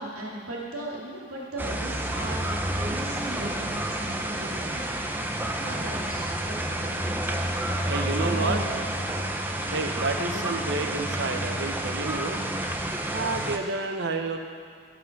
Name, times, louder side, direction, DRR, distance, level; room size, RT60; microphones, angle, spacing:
voice 1, 0.0-7.2 8.2-8.9 10.3-10.4, right 1 dB, 75° right, -4 dB, 2.5 m, -38 dB
sound 1, 1.6-13.6, right 1 dB, 10° right, 0.6 m, -29 dB
voice 2, 5.2-5.6 7.9-8.6 9.7-12.4 13.1-14.4, right 3 dB, 50° right, 5 dB, 0.9 m, -30 dB
17.0 x 6.0 x 5.9 m, 2.2 s
head